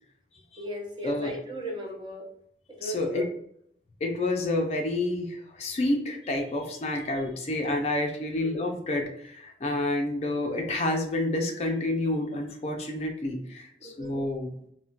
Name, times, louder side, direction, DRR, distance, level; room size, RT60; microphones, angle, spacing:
voice 1, 0.6-2.3 2.7-3.3 8.4-8.5 13.8-14.1, equal, 25° right, 0 dB, 0.5 m, -37 dB
voice 2, 2.8-3.2 4.0-14.5, left 2 dB, 35° left, 2 dB, 0.4 m, -29 dB
2.3 x 2.1 x 3.8 m, 0.70 s
head